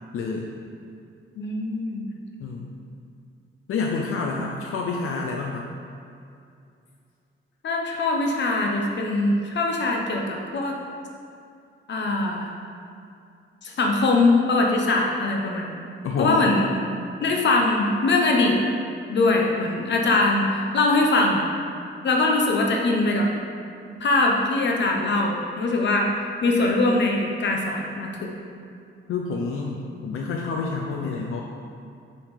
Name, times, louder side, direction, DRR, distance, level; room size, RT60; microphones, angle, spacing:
voice 1, 0.1-0.5 2.4-2.7 3.7-5.7 16.0-16.5 29.1-31.4, left 4 dB, 85° left, 0 dB, 0.7 m, -28 dB
voice 2, 1.3-2.1 7.6-10.8 11.9-12.5 13.6-15.7 16.2-16.7 17.2-18.6 19.1-21.4 22.0-23.3 24.0-26.1 26.4-28.3, left 2 dB, 60° left, 0 dB, 1.1 m, -22 dB
6.8 x 5.6 x 4.9 m, 2.5 s
wide cardioid pair, 160°, 21 cm